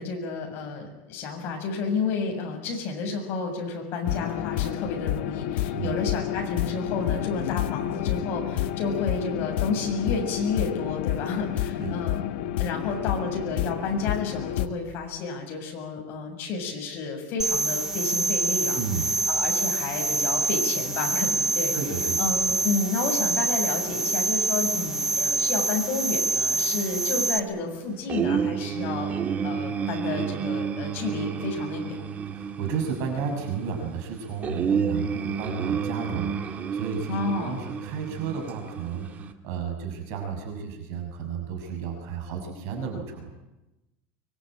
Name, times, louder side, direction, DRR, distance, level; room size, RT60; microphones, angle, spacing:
voice 1, 0.0-12.3 12.6-18.8 19.3-21.8 22.2-29.1 29.4-32.0 37.1-37.6, left 4 dB, 45° left, 2 dB, 7.2 m, -31 dB
sound 1, 4.0-14.7, left 12 dB, 85° left, 1.3 m, -29 dB
sound 2, 17.4-27.4, right 3 dB, 10° right, 1.9 m, -26 dB
voice 2, 18.8-19.1 21.7-22.2 32.3-43.3, right 6 dB, 55° right, 3 dB, 6.3 m, -32 dB
sound 3, 28.1-39.3, right 6 dB, 25° right, 1.8 m, -30 dB
24.5 x 22.5 x 9.0 m, 0.97 s
supercardioid pair, 155°, 6 cm